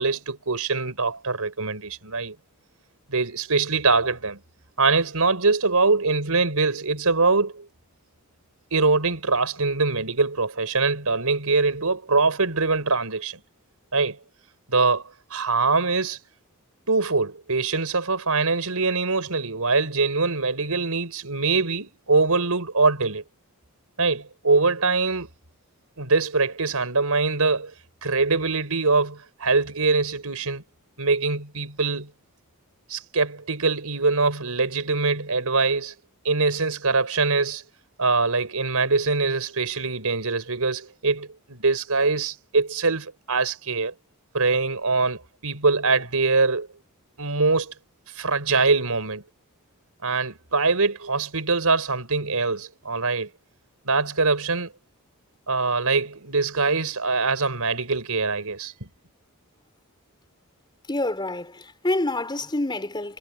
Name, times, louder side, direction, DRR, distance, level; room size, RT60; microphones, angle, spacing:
voice 1, 0.0-2.4 3.1-4.4 4.8-7.7 8.7-13.4 13.9-14.2 14.7-15.0 15.3-16.2 16.9-23.2 24.0-25.3 26.0-27.7 28.0-30.6 31.0-32.1 32.9-35.9 36.2-37.6 38.0-43.9 44.3-46.7 47.2-47.7 48.1-49.2 50.0-53.3 53.9-54.7 55.5-58.7, right 3 dB, 90° right, 4.2 m, -23 dB
voice 2, 60.9-63.2, left 2 dB, 20° left, 3.9 m, -27 dB
head